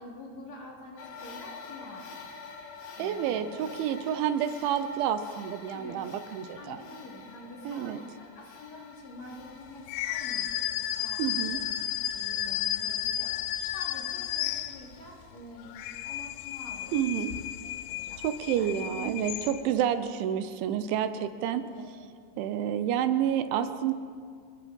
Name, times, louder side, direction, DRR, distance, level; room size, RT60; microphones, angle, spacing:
voice 1, 0.0-2.1 3.0-3.5 5.7-6.1 6.5-11.7 12.1-13.4 13.7-17.3 17.6-19.3 21.6-21.9, left 1 dB, 35° left, -3 dB, 4.2 m, -47 dB
sound 1, 1.0-19.2, left 5 dB, 55° left, 3.0 m, -50 dB
voice 2, 3.0-6.8 7.6-8.0 11.2-11.6 16.9-17.3 18.2-21.6 22.4-23.9, right 9 dB, 75° right, 10 dB, 3.1 m, -29 dB
sound 2, 9.9-15.1 15.6-19.9, left 12 dB, 90° left, 3.4 m, -33 dB
28.5 x 21.0 x 5.4 m, 2.1 s
omnidirectional pair, 5.7 m